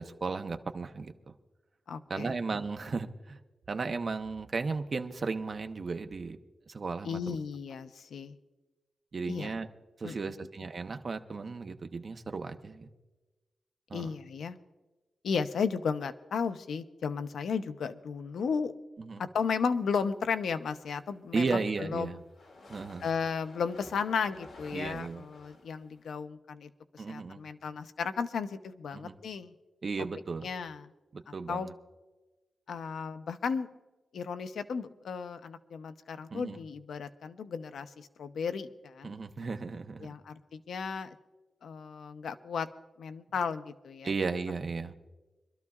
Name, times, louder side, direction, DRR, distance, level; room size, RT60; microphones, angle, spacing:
voice 1, 0.0-1.3 2.1-3.4 3.7-6.4 6.7-7.4 9.1-9.7 10.0-12.9 13.9-14.2 19.0-19.2 21.3-22.2 22.7-23.1 24.7-25.2 27.0-27.4 28.9-29.1 29.8-30.5 31.1-31.7 36.3-36.6 39.0-40.1 44.0-44.9, right 4 dB, 40° right, 7 dB, 0.8 m, -35 dB
voice 2, 1.9-2.3 7.0-8.3 9.3-9.5 10.0-10.2 13.9-14.6 15.2-18.7 19.2-22.2 23.0-29.5 30.4-30.9 31.3-31.7 32.7-33.7 34.1-39.1 40.0-41.1 41.6-42.7 43.0-44.1, left 6 dB, 85° left, 9 dB, 0.7 m, -34 dB
sound 1, 21.1-26.2, left 2 dB, 65° left, 2.2 m, -53 dB
26.0 x 13.0 x 2.4 m, 1.2 s
wide cardioid pair, 165°, 0 cm